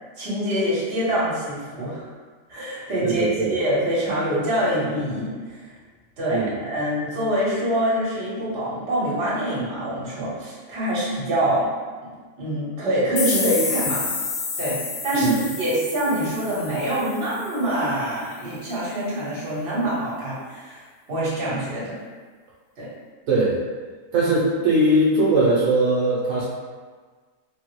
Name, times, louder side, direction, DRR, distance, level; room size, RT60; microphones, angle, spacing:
voice 1, 0.2-2.0 2.5-5.7 6.2-11.7 12.4-14.0 14.6-14.8 15.0-20.8 21.1-21.9 22.8-22.9, right 1 dB, 50° right, -7 dB, 1.2 m, -25 dB
voice 2, 3.0-3.6 6.3-6.5 15.1-15.3 23.3-23.5 24.1-26.5, right 2 dB, 75° right, -7 dB, 1.1 m, -20 dB
sound 1, 13.2-17.8, left 4 dB, 80° left, 1.0 m, -30 dB
3.5 x 2.0 x 3.0 m, 1.4 s
omnidirectional pair, 1.4 m